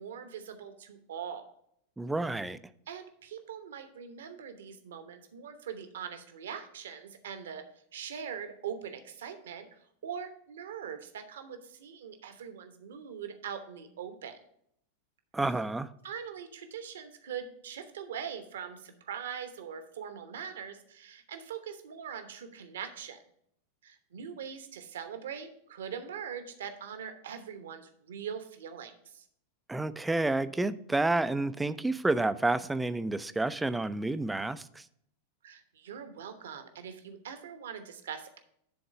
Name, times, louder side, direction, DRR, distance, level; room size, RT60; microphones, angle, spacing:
voice 1, 0.0-1.5 2.9-7.6 7.9-14.4 16.0-23.2 23.8-29.2 35.4-38.4, right 7 dB, 60° right, 8 dB, 0.9 m, -42 dB
voice 2, 2.0-2.6 15.3-15.9 29.7-34.8, right 2 dB, 5° right, 14 dB, 0.4 m, -29 dB
10.5 x 3.9 x 5.0 m, 0.71 s
figure-of-eight pair, 90°, 0 cm